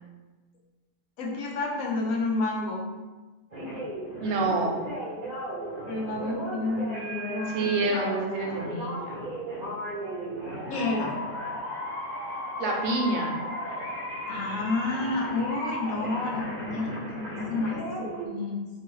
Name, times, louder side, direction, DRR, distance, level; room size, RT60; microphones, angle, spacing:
voice 1, 1.2-2.8 5.9-7.8 10.7-11.2 14.3-18.8, left 2 dB, 80° left, -2 dB, 1.1 m, -30 dB
sound 1, 3.5-18.3, equal, 45° right, 0.6 m, -35 dB
voice 2, 4.2-4.8 7.5-8.9 12.6-13.4, right 3 dB, 80° right, 0 dB, 1.0 m, -27 dB
3.0 x 2.3 x 3.0 m, 1.2 s
omnidirectional pair, 1.4 m